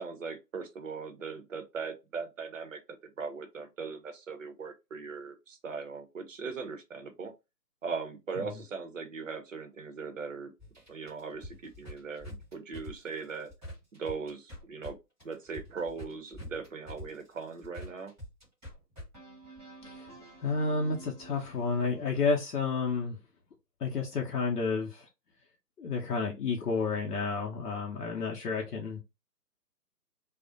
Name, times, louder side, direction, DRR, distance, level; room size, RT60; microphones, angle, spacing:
voice 1, 0.0-2.8 3.2-7.3 7.8-10.5 10.9-13.5 13.9-15.0 15.2-18.1, right 5 dB, 50° right, 0.6 m, -39 dB
sound 1, 10.6-14.9 15.2-22.4, equal, 5° right, 0.9 m, -47 dB
voice 2, 20.4-23.2 23.8-25.1 25.8-29.0, left 4 dB, 70° left, 0.7 m, -31 dB
2.4 x 2.0 x 2.5 m
figure-of-eight pair, 145°, 50 cm